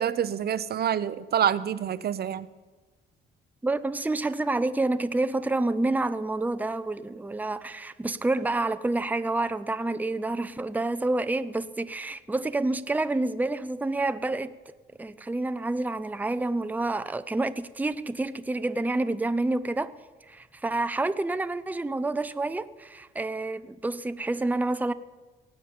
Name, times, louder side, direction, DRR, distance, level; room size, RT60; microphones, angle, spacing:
voice 1, 0.0-2.5, right 9 dB, 55° right, 0.7 m, -27 dB
voice 2, 3.6-14.5 15.0-19.9 20.3-24.9, right 2 dB, 10° right, 0.6 m, -28 dB
18.0 x 7.3 x 8.8 m
cardioid pair, 90°, 20 cm